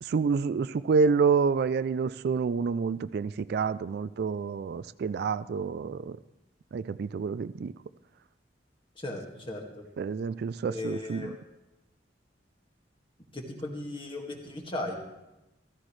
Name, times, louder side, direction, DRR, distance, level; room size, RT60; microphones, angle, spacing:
voice 1, 0.0-6.2 6.7-7.7 10.0-11.3, right 5 dB, 60° right, 14 dB, 0.3 m, -28 dB
voice 2, 9.0-9.8 10.7-11.3 13.3-15.0, left 2 dB, 30° left, 0 dB, 1.9 m, -37 dB
14.5 x 14.5 x 3.2 m, 0.95 s
head